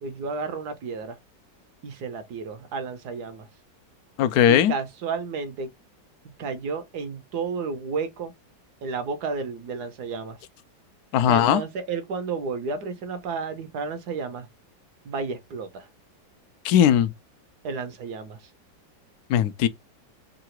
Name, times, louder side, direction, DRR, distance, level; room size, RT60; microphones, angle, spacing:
voice 1, 0.0-1.2 1.8-3.5 4.5-5.7 6.4-8.3 8.8-10.4 11.3-14.5 15.0-15.9 17.6-18.4, right 4 dB, 65° right, 1.3 m, -32 dB
voice 2, 4.2-4.7 11.1-11.6 16.6-17.1 19.3-19.7, left 10 dB, 70° left, 1.0 m, -18 dB
3.8 x 2.4 x 4.4 m
omnidirectional pair, 2.0 m